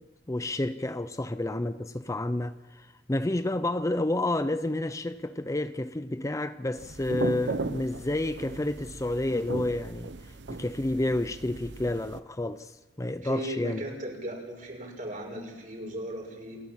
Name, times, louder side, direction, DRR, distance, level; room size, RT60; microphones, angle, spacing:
voice 1, 0.0-10.1 10.5-13.8, left 1 dB, 20° left, 0.6 m, -30 dB
sound 1, 6.8-12.2, right 3 dB, 85° right, 0.9 m, -37 dB
voice 2, 13.2-16.6, right 1 dB, 50° right, 6.0 m, -37 dB
28.0 x 13.5 x 7.5 m
head